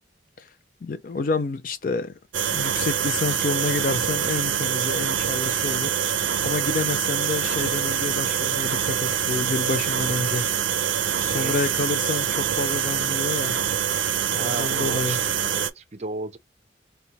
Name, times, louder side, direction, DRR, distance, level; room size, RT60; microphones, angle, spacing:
voice 1, 0.8-2.1 2.5-5.9 6.4-10.5 11.2-13.6 14.3-15.2, left 3 dB, 50° left, 0.4 m, -29 dB
sound 1, 2.3-15.7, right 8 dB, 90° right, 0.5 m, -25 dB
voice 2, 11.3-11.6 14.3-16.4, right 2 dB, 35° right, 0.5 m, -34 dB
4.4 x 2.2 x 2.8 m
head